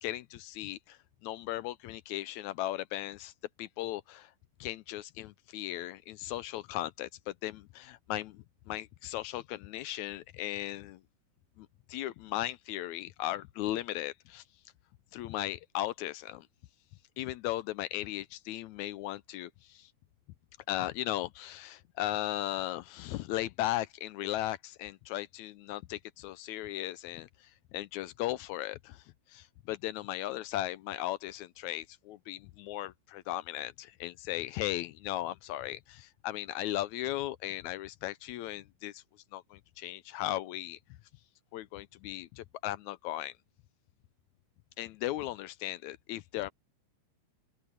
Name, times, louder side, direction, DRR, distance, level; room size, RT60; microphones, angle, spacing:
voice 1, 0.0-3.3 3.6-4.3 4.6-11.0 11.6-14.4 15.1-16.5 17.2-19.9 20.7-29.0 29.3-39.0 39.3-40.8 41.5-43.3 44.8-46.5, left 14 dB, 75° left, 1.8 m, -37 dB
omnidirectional pair, 3.7 m